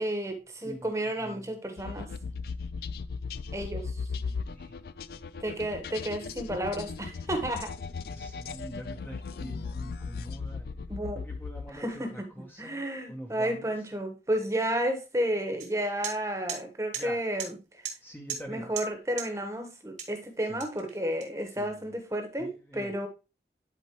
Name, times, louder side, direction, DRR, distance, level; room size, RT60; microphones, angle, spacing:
voice 1, 0.0-2.1 3.5-3.9 5.4-7.7 10.9-11.2 11.7-12.3 12.6-17.6 18.5-23.1, right 1 dB, 15° right, 1.1 m, -32 dB
sound 1, 1.8-11.9, left 4 dB, 55° left, 0.3 m, -37 dB
voice 2, 8.1-12.0 12.4-13.7 16.9-17.2 18.0-18.7 20.5-20.6 21.6-21.9 22.4-22.9, equal, 10° left, 0.8 m, -45 dB
sound 2, 15.6-15.7 16.0-16.2 16.5-16.6 16.9-17.1 17.4-17.5 17.8-18.0 18.3-18.5 18.8-18.9 19.2-19.3 20.0-20.2 20.6-21.6, right 8 dB, 40° right, 1.2 m, -36 dB
10.5 x 4.3 x 3.0 m
head